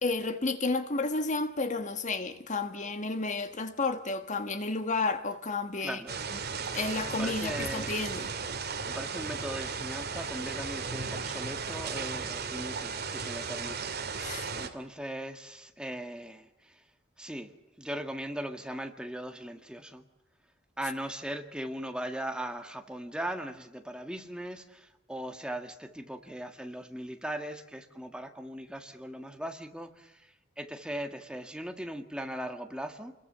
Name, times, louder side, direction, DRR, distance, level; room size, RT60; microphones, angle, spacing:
voice 1, 0.0-6.0 6.7-8.3 14.2-14.5, left 3 dB, 40° left, 1.5 m, -31 dB
voice 2, 5.8-6.2 7.1-7.9 8.9-16.8 17.2-17.5 17.8-20.0 20.8-33.1, right 1 dB, 5° right, 1.8 m, -39 dB
sound 1, 6.1-14.7, right 5 dB, 55° right, 2.7 m, -35 dB
28.5 x 22.0 x 7.0 m
head